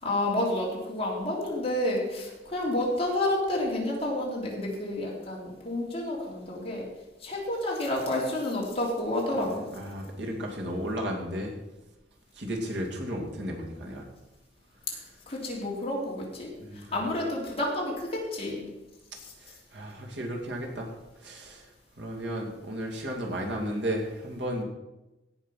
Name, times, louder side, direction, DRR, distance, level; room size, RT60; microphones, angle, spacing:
voice 1, 0.0-6.8 7.2-9.7 14.9-18.7 19.2-19.3, left 1 dB, 35° left, -3 dB, 3.3 m, -30 dB
voice 2, 9.5-11.5 12.3-14.1 16.6-16.9 19.4-20.9 21.2-21.7 22.0-24.6, equal, 85° right, 0 dB, 2.5 m, -34 dB
16.5 x 5.6 x 5.7 m, 1.0 s
head